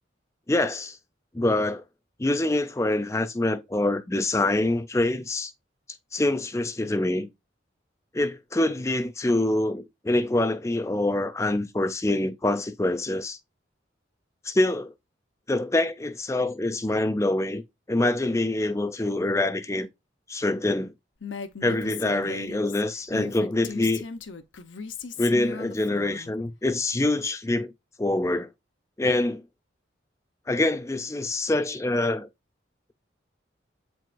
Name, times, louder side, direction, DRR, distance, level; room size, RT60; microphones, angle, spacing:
voice 1, 0.5-1.0 1.3-1.8 2.2-5.5 6.1-7.3 8.1-13.4 14.4-14.9 15.5-17.6 17.9-19.9 20.3-20.9 21.6-24.0 25.2-27.7 28.0-28.5 29.0-29.4 30.5-32.3, left 2 dB, 15° left, 0.5 m, -25 dB
Female speech woman speaking, 21.2-26.3, left 5 dB, 80° left, 0.8 m, -37 dB
8.4 x 4.6 x 2.6 m
head